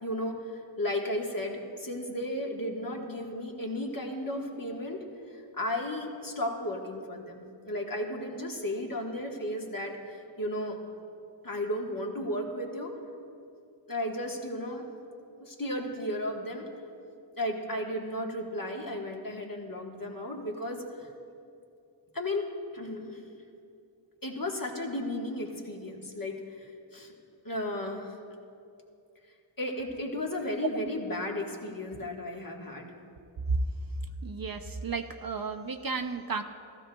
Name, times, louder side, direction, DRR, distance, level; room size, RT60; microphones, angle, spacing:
voice 1, 0.0-5.0 5.3-10.8 11.4-12.9 13.9-14.9 15.4-16.7 17.3-20.8 22.1-22.5 22.7-23.2 24.2-27.1 27.4-28.2 29.6-32.9, left 1 dB, 45° left, 0 dB, 1.4 m, -34 dB
voice 2, 34.2-36.4, right 4 dB, 50° right, 7 dB, 0.5 m, -32 dB
15.5 x 13.5 x 2.3 m, 2.6 s
wide cardioid pair, 60°, 47 cm